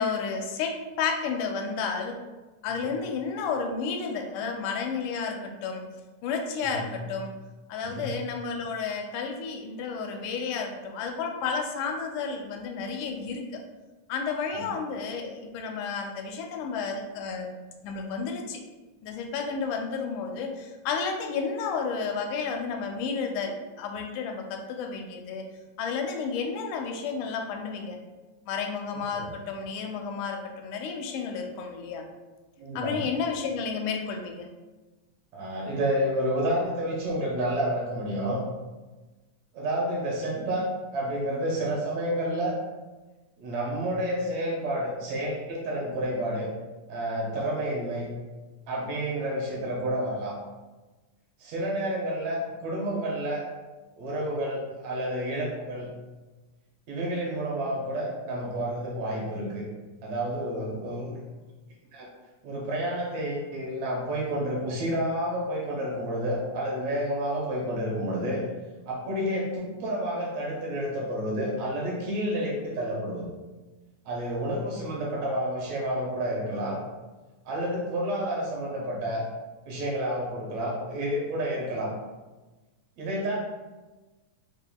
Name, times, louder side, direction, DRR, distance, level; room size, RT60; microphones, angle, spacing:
voice 1, 0.0-2.2 2.6-5.8 6.2-7.3 7.7-13.6 14.1-17.5 17.8-18.6 19.0-25.4 25.8-28.0 28.5-32.0 32.8-34.5, left 5 dB, 85° left, 3 dB, 2.0 m, -31 dB
voice 2, 32.6-33.0 35.3-38.4 39.5-42.6 43.4-46.5 46.9-48.1 48.7-50.3 51.4-53.4 54.0-55.9 56.9-59.7 60.0-61.2 61.9-62.1 62.4-68.4 68.9-73.3 74.1-76.8 77.5-79.2 79.7-81.9 83.0-83.4, right 1 dB, 70° right, -3 dB, 1.8 m, -30 dB
4.8 x 3.6 x 2.2 m, 1.2 s
omnidirectional pair, 3.5 m